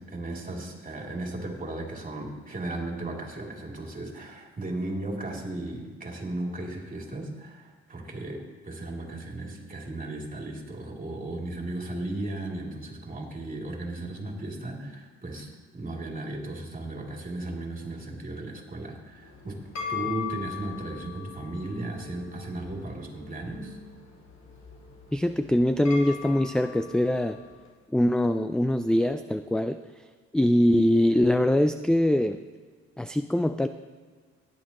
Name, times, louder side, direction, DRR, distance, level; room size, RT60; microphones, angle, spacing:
voice 1, 0.0-15.5 15.7-19.6 19.9-23.8, right 2 dB, 25° right, -1 dB, 3.1 m, -36 dB
sound 1, 19.1-27.6, left 7 dB, 60° left, 3.7 m, -40 dB
voice 2, 25.1-27.4 27.9-29.8 30.3-32.4 33.0-33.7, left 1 dB, 5° left, 9 dB, 0.4 m, -23 dB
17.5 x 11.0 x 3.1 m, 1.5 s
cardioid pair, 90°, 30 cm